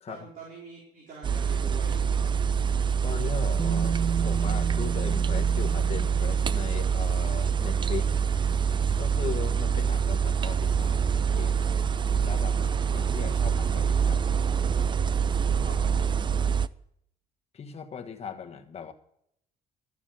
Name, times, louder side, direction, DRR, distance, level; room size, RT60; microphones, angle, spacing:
voice 1, 0.1-2.3 12.6-12.7 15.5-16.2, right 4 dB, 55° right, -3 dB, 3.9 m, -45 dB
sound 1, 1.2-16.7, right 7 dB, 30° right, 0.4 m, -25 dB
voice 2, 3.0-4.0 4.2-8.1 9.0-11.6 12.2-12.6 12.9-14.5 17.5-18.9, left 7 dB, 40° left, 4 dB, 1.5 m, -38 dB
Bass guitar, 3.6-7.5 8.7-8.8, right 7 dB, 5° right, 1.8 m, -34 dB
12.5 x 7.3 x 7.5 m, 0.73 s
cardioid pair, 110°, 17 cm